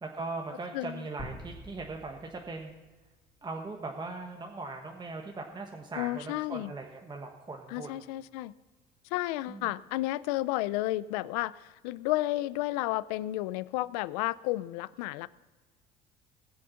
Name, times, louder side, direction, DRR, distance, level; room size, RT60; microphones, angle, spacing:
voice 1, 0.0-2.7 3.4-8.0 9.5-9.7, right 3 dB, 20° right, 1 dB, 1.3 m, -40 dB
sound 1, 1.2-3.1, equal, 30° left, 3.9 m, -46 dB
voice 2, 6.0-6.7 7.7-8.5 9.1-15.3, left 17 dB, 90° left, 18 dB, 0.5 m, -32 dB
19.0 x 6.4 x 5.7 m, 1.3 s
supercardioid pair, 90°, 20 cm